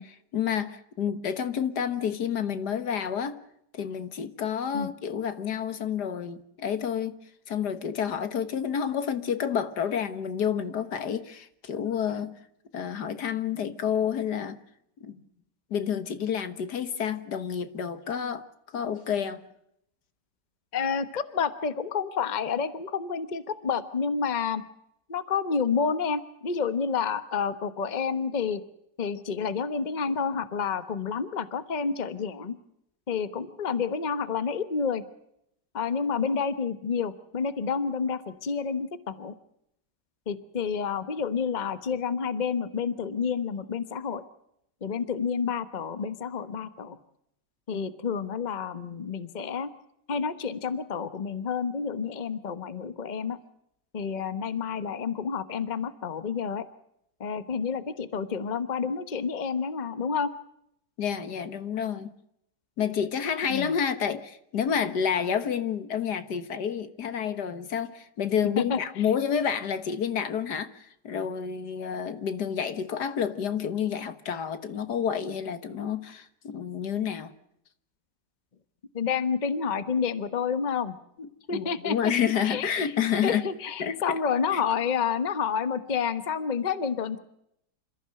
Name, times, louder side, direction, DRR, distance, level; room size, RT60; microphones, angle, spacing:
voice 1, 0.0-3.4 3.7-7.2 7.5-12.4 12.7-14.6 15.0-15.2 15.7-18.4 18.7-19.4 61.0-62.1 62.8-77.3 81.2-83.5 83.8-84.0 84.5-84.6, left 8 dB, 70° left, 1.9 m, -29 dB
voice 2, 20.7-24.6 25.1-28.6 29.0-32.6 33.1-35.0 35.7-39.3 40.3-44.2 44.8-47.0 47.7-49.7 50.1-53.4 53.9-56.7 57.2-60.3 63.5-63.7 68.6-68.8 78.9-81.0 81.5-82.1 82.4-82.9 83.2-87.2, left 6 dB, 30° left, 1.1 m, -29 dB
27.5 x 14.5 x 7.7 m
omnidirectional pair, 1.8 m